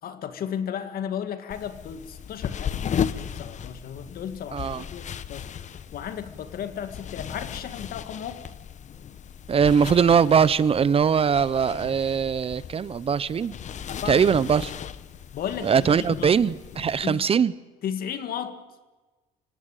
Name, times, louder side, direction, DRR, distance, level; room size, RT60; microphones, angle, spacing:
voice 1, 0.0-5.5 5.9-8.5 13.9-14.5 15.3-15.9 16.2-16.3 17.0-17.3 17.8-18.7, left 8 dB, 60° left, 2.0 m, -34 dB
sound 1, 1.5-17.1, left 8 dB, 45° left, 1.0 m, -36 dB
voice 2, 4.5-4.8 9.5-13.6 14.1-14.7 15.6-17.5, right 7 dB, 35° right, 0.8 m, -21 dB
25.0 x 17.5 x 9.1 m
cardioid pair, 110°, 17 cm